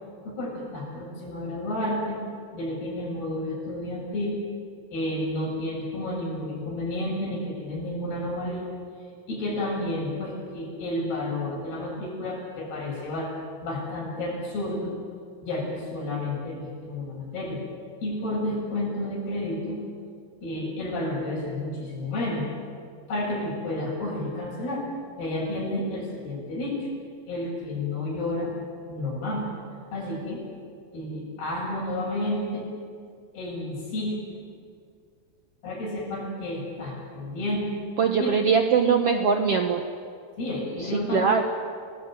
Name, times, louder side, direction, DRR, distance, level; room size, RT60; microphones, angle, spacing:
voice 1, 0.2-2.2 2.5-4.4 4.9-8.7 9.3-13.3 13.6-14.9 15.4-17.6 18.0-19.8 20.4-22.5 23.1-24.8 25.2-26.9 27.3-28.5 28.9-29.5 29.9-30.4 30.9-32.7 33.3-34.2 35.6-37.7 38.2-38.4 40.4-41.5, left 1 dB, 90° left, -2 dB, 9.7 m, -31 dB
voice 2, 38.0-39.8 40.8-41.4, right 6 dB, 65° right, 5 dB, 1.5 m, -22 dB
30.0 x 19.5 x 9.2 m, 2.2 s
omnidirectional pair, 4.4 m